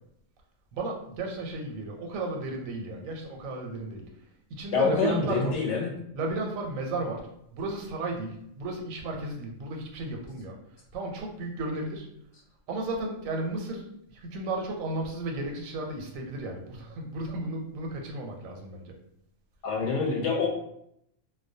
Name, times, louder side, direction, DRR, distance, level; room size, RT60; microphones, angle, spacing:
voice 1, 0.7-4.0 4.5-5.5 6.1-7.2 7.5-10.6 10.9-12.1 12.7-18.9, right 2 dB, 85° right, 2 dB, 1.0 m, -34 dB
voice 2, 4.7-5.9 19.6-20.5, left 4 dB, 70° left, 0 dB, 0.8 m, -26 dB
2.2 x 2.1 x 2.6 m, 0.75 s
omnidirectional pair, 1.4 m